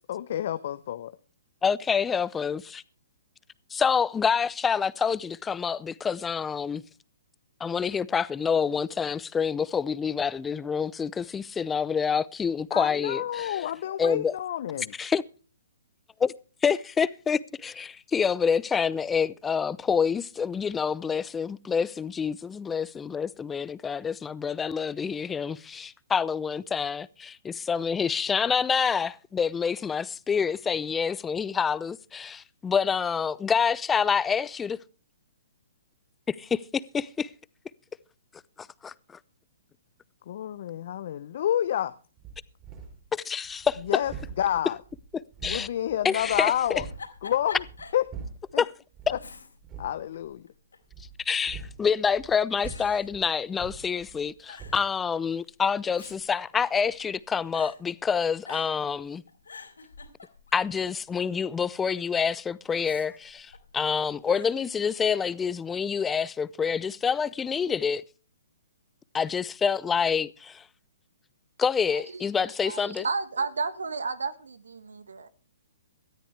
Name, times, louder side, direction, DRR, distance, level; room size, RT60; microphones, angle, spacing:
voice 1, 0.1-1.1 12.7-14.9 40.3-41.9 43.8-44.8 45.4-46.9 47.2-47.6 47.9-48.0 48.5-48.6 49.1-49.2 49.8-50.5, left 11 dB, 55° left, 0.8 m, -29 dB
voice 2, 1.6-2.8 3.7-6.8 7.6-13.6 14.0-14.3 15.0-15.2 16.2-16.3 16.6-34.8 36.3-36.6 36.9-37.3 38.6-38.9 43.1-43.8 45.4-45.7 46.0-46.5 48.6-48.7 51.3-59.2 60.5-68.0 69.1-70.6 71.6-73.0, left 6 dB, 15° left, 0.6 m, -27 dB
Huge wing flaps for bird dragon dinosaur., 42.2-43.1 43.4-47.1 47.5-48.5 48.9-49.3 49.6-50.0 50.9-54.3 54.6-54.9, right 5 dB, 25° right, 6.2 m, -43 dB
Giggle, 46.2-48.0 48.4-48.5 49.1-49.8 50.1-50.9 51.7-52.1 52.6-53.9 54.1-54.2 54.5-54.8 55.6-57.2 57.5-57.8 58.4-58.9 59.3-60.7 62.7-63.8 64.3-64.6, left 4 dB, 85° left, 3.8 m, -46 dB
voice 3, 71.9-75.3, right 4 dB, 80° right, 1.4 m, -33 dB
18.5 x 13.5 x 3.4 m
hypercardioid pair, 130°, 0 cm